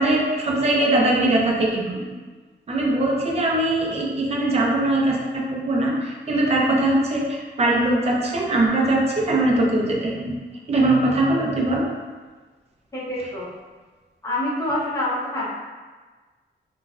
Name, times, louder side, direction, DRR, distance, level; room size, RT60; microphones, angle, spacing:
voice 1, 0.0-2.0 2.7-10.3 10.7-11.9, right 2 dB, 35° right, -2 dB, 0.5 m, -21 dB
voice 2, 12.9-13.5 14.2-15.5, left 1 dB, 15° left, -7 dB, 0.6 m, -26 dB
3.0 x 2.2 x 2.4 m, 1.4 s
wide cardioid pair, 155°, 19 cm